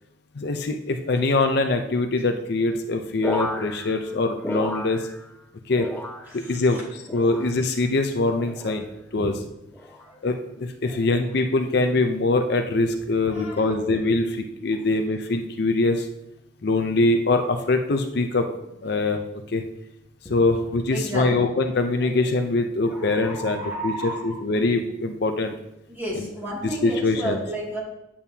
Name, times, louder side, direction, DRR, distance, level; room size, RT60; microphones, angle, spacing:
voice 1, 0.4-5.0 5.7-5.9 6.5-8.9 9.1-9.3 10.2-16.1 16.6-18.5 18.8-19.2 19.5-19.6 20.3-25.5 26.1-26.3 26.8-27.4, left 2 dB, 55° left, 5 dB, 0.6 m, -23 dB
sound 1, 3.2-5.5 5.7-6.6 7.1-7.8 8.4-8.9 9.7-10.1 11.0-11.3, left 1 dB, 10° left, 0.5 m, -34 dB
voice 2, 6.3-6.8 9.1-9.2 9.8-10.2 10.8-11.0 13.2-13.7 20.9-21.4 22.0-22.1 22.8-24.4 25.9-27.8, right 1 dB, 10° right, -5 dB, 2.4 m, -33 dB
9.0 x 8.6 x 2.8 m, 0.85 s
head